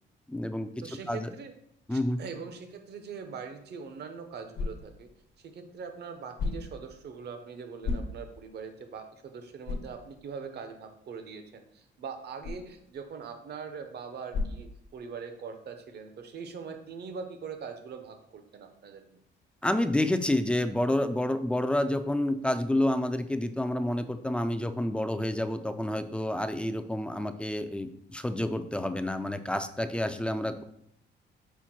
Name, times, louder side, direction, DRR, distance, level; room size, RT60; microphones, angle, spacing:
voice 1, 0.3-1.3 1.9-2.2 19.6-30.6, left 1 dB, 5° left, 10 dB, 0.3 m, -29 dB
voice 2, 0.8-1.5 1.9-5.1 5.4-19.2, right 5 dB, 55° right, 7 dB, 0.7 m, -42 dB
sound 1, 3.7-15.4, left 3 dB, 65° left, 1.0 m, -40 dB
5.6 x 2.1 x 4.4 m, 0.73 s
cardioid pair, 90°, 20 cm